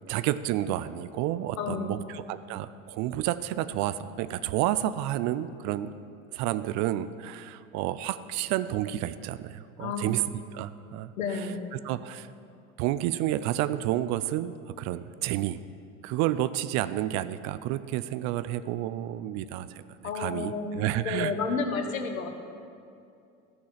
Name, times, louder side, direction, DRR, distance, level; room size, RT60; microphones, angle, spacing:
voice 1, 0.1-5.9 6.3-10.3 10.5-11.4 11.7-12.3 12.8-15.6 16.0-19.7 20.1-21.3, right 13 dB, 45° right, 14 dB, 0.4 m, -30 dB
voice 2, 1.6-2.0 9.8-10.1 11.2-11.7 20.0-20.7 21.0-22.3, left 5 dB, 75° left, 6 dB, 1.1 m, -31 dB
12.5 x 6.2 x 7.3 m, 2.5 s
figure-of-eight pair, 70°, 41 cm